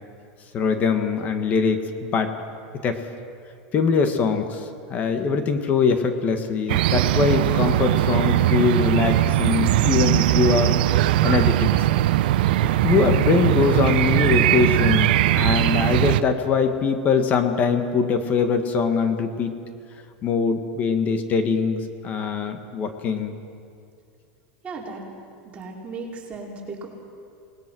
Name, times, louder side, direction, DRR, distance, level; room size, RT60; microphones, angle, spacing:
voice 1, 0.5-2.4 2.8-3.0 3.7-10.7 11.2-11.9 12.8-19.6 20.2-23.3, left 5 dB, 35° left, 7 dB, 1.8 m, -22 dB
sound 1, 6.7-16.2, right 14 dB, 75° right, 0.7 m, -20 dB
voice 2, 24.6-25.0 25.5-26.9, right 3 dB, 25° right, -2 dB, 4.6 m, -36 dB
27.5 x 20.0 x 6.3 m, 2.4 s
supercardioid pair, 140°, 5 cm